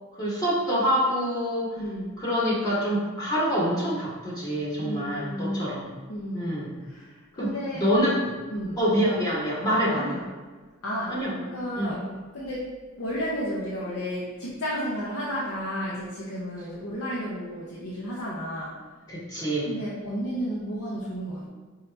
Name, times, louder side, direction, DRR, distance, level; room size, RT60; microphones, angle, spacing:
voice 1, 0.2-1.8 2.2-5.9 6.3-6.8 7.4-8.3 8.8-10.1 11.1-11.3 11.8-11.9 19.1-19.7, equal, 20° left, -7 dB, 1.1 m, -26 dB
voice 2, 1.8-2.1 4.8-5.7 6.1-6.5 6.8-7.8 8.5-8.8 9.9-10.3 10.8-11.2 11.5-12.1 12.3-18.7 19.6-21.5, equal, 80° left, -6 dB, 0.8 m, -32 dB
5.5 x 2.8 x 3.3 m, 1.4 s
head